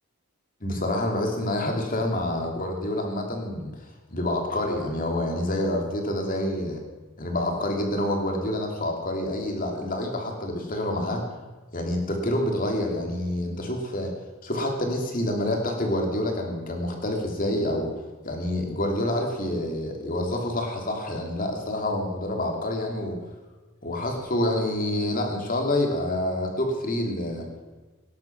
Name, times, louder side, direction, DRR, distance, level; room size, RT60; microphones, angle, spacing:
voice 1, 0.6-3.8 4.1-6.8 7.2-11.2 11.7-14.1 14.4-17.9 18.2-23.2 23.8-27.4, left 1 dB, 40° left, 2 dB, 2.8 m, -27 dB
18.5 x 10.5 x 6.0 m, 1.2 s
head